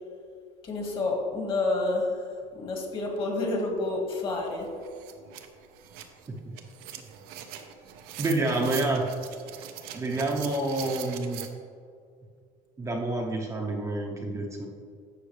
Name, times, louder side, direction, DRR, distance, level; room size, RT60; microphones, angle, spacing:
voice 1, 0.6-2.3 2.5-4.7, left 2 dB, 35° left, 1 dB, 1.8 m, -29 dB
sound 1, 4.2-4.3 4.6-11.5, right 9 dB, 80° right, 0.9 m, -42 dB
voice 2, 8.2-9.1 9.9-11.4 12.8-14.7, right 2 dB, 20° right, -1 dB, 0.8 m, -28 dB
11.5 x 7.7 x 3.3 m, 2.2 s
cardioid pair, 160°, 15 cm